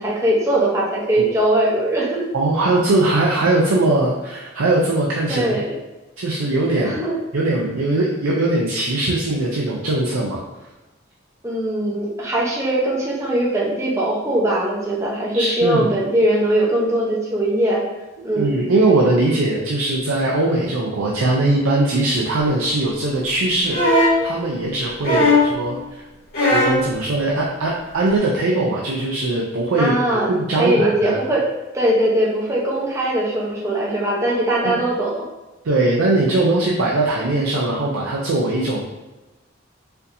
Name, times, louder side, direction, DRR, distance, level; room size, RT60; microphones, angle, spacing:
voice 1, 0.0-2.3 5.3-5.7 6.8-7.1 11.4-17.8 18.2-18.6 19.3-19.4 29.8-30.3 30.6-31.4 31.7-35.2, right 1 dB, 15° right, -5 dB, 0.7 m, -20 dB
voice 2, 2.3-5.6 6.2-7.0 7.3-10.4 15.3-15.8 18.4-26.0 26.5-29.9 30.3-31.2 34.6-34.8 35.6-38.8, right 2 dB, 80° right, -2 dB, 0.5 m, -20 dB
sound 1, 23.7-24.2 25.0-25.6 26.3-26.9 28.1-28.2, left 1 dB, 45° left, 1.4 m, -16 dB
4.3 x 2.7 x 2.6 m, 1.1 s
head